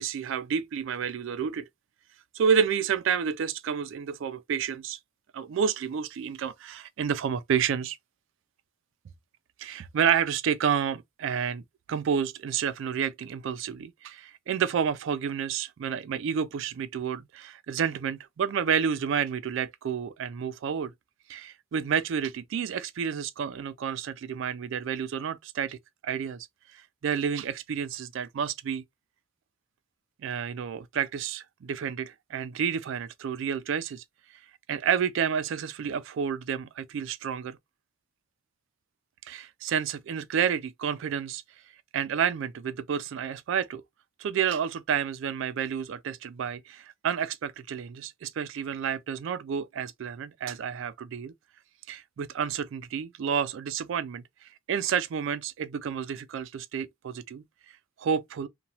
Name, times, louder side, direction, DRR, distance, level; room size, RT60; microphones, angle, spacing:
voice 1, 0.0-1.7 2.3-5.0 5.3-8.0 9.6-11.6 11.9-20.9 21.3-25.8 26.0-26.5 26.7-28.8 30.2-34.0 34.7-37.6 39.2-41.4 41.9-43.8 44.2-51.3 51.9-54.2 54.7-57.4 58.0-58.5, right 7 dB, 65° right, 0.3 m, -30 dB
2.9 x 2.2 x 2.7 m
head